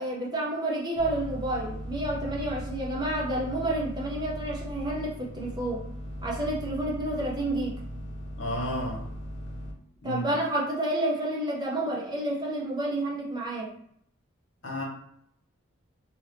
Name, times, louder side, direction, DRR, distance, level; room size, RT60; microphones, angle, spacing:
voice 1, 0.0-5.8 6.2-7.8 10.0-13.7, right 1 dB, 20° right, -3 dB, 0.5 m, -30 dB
sound 1, 1.0-9.7, equal, 35° left, 0.8 m, -38 dB
voice 2, 8.4-9.1 10.0-10.3 14.6-14.8, left 1 dB, 60° left, -3 dB, 1.1 m, -32 dB
2.8 x 2.6 x 3.2 m, 0.70 s
head